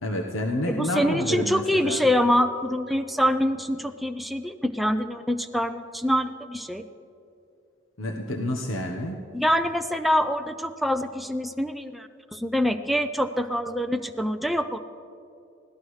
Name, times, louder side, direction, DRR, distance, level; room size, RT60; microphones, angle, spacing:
voice 1, 0.0-2.1 8.0-9.2, left 1 dB, 80° left, 1 dB, 1.1 m, -29 dB
voice 2, 0.7-6.8 9.3-14.8, equal, ahead, 6 dB, 0.4 m, -25 dB
24.0 x 16.5 x 3.2 m, 2.6 s
head